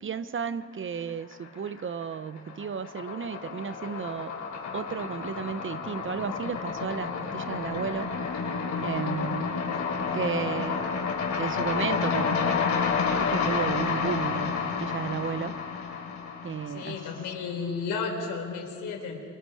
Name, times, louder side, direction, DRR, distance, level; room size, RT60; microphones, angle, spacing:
voice 1, 0.0-4.3 4.7-8.1 8.8-9.6 10.1-10.9 11.4-12.6 13.2-15.6 16.4-17.0, right 7 dB, 40° right, 14 dB, 0.9 m, -33 dB
sound 1, 1.1-1.8 2.1-17.3, left 5 dB, 70° left, 4.0 m, -30 dB
voice 2, 16.7-19.2, left 5 dB, 85° left, 2 dB, 4.3 m, -33 dB
29.0 x 24.5 x 4.9 m, 2.1 s
cardioid pair, 90°, 30 cm